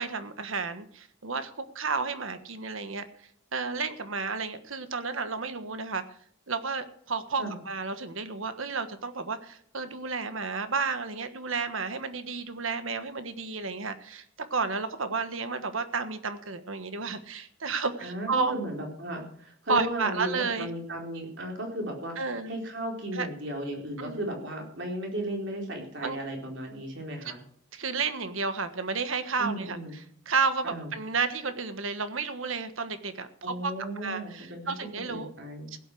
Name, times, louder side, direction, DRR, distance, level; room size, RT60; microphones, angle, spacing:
voice 1, 0.0-3.0 3.5-6.0 6.5-14.2 14.5-18.5 19.7-20.7 22.2-22.5 23.1-23.3 24.0-24.3 26.0-26.2 27.7-29.8 30.3-33.7 34.0-35.3 35.7-35.8, right 4 dB, 75° right, 10 dB, 1.4 m, -31 dB
voice 2, 18.0-27.4 29.4-29.9 30.6-30.9 33.4-35.7, right 1 dB, 60° right, 1 dB, 4.1 m, -35 dB
16.0 x 8.3 x 6.2 m, 0.64 s
head